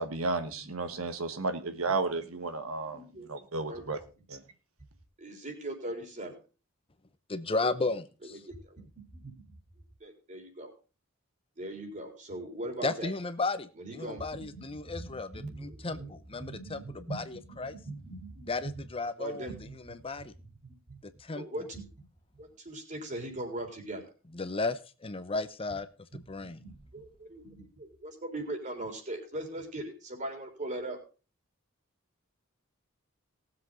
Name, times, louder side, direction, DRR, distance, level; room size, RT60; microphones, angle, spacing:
voice 1, 0.0-3.0 3.3-4.0 4.3-4.4, right 3 dB, 80° right, 9 dB, 1.4 m, -33 dB
voice 2, 2.8-3.4 3.7-3.9 5.2-6.4 7.8-7.9 8.2-8.8 9.1-9.3 10.0-10.7 11.6-13.1 13.8-18.8 19.2-19.9 20.6-21.0 21.3-22.0 22.4-24.0 26.6-31.0, right 1 dB, 35° right, 4 dB, 3.9 m, -40 dB
voice 3, 7.3-8.4 12.8-17.7 18.5-19.5 20.0-20.3 21.2-21.4 24.3-25.9 26.1-26.6, left 3 dB, 25° left, 11 dB, 0.8 m, -34 dB
19.0 x 7.7 x 3.8 m, 0.34 s
head